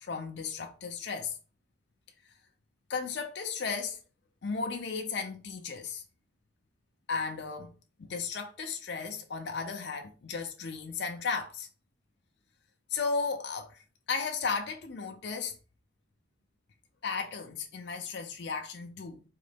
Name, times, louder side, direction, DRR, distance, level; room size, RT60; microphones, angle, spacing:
voice 1, 0.0-1.4 2.9-4.0 4.4-6.0 7.1-7.7 8.0-11.7 12.9-13.7 14.1-15.6 17.0-19.2, left 5 dB, 60° left, 0.5 m, -35 dB
3.8 x 3.1 x 3.4 m
head